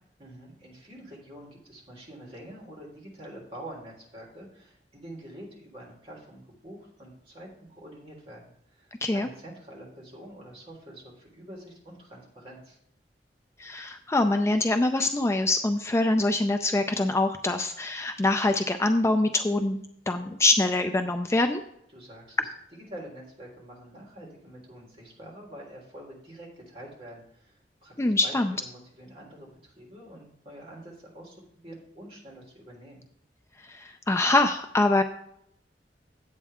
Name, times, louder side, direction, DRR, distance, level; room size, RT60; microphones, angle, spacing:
voice 1, 0.2-8.4 8.7-12.8 21.9-31.4 31.6-33.0, right 1 dB, 35° right, -2 dB, 3.2 m, -46 dB
voice 2, 13.6-21.6 28.0-28.5 33.7-35.0, left 2 dB, 15° left, 7 dB, 0.4 m, -24 dB
9.8 x 8.3 x 3.6 m, 0.72 s
head